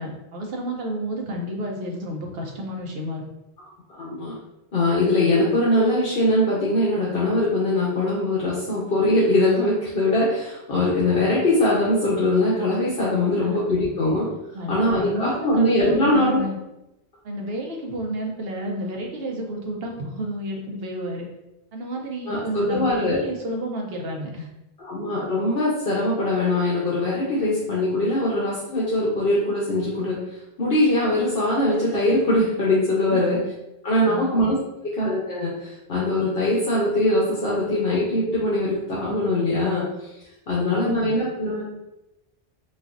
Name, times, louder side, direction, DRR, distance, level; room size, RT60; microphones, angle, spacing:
voice 1, 0.0-3.3 13.4-13.6 14.5-16.6 17.2-21.3 21.7-24.5 33.1-33.4 34.1-34.5 40.5-41.1, equal, 65° right, 1 dB, 0.9 m, -31 dB
voice 2, 3.9-4.4 4.7-14.3 14.7-16.4 22.3-23.2 24.8-30.2 30.6-33.4 33.8-34.6 34.8-40.1 40.5-41.6, left 1 dB, 60° left, -6 dB, 0.9 m, -22 dB
4.1 x 2.4 x 2.5 m, 0.91 s
omnidirectional pair, 1.1 m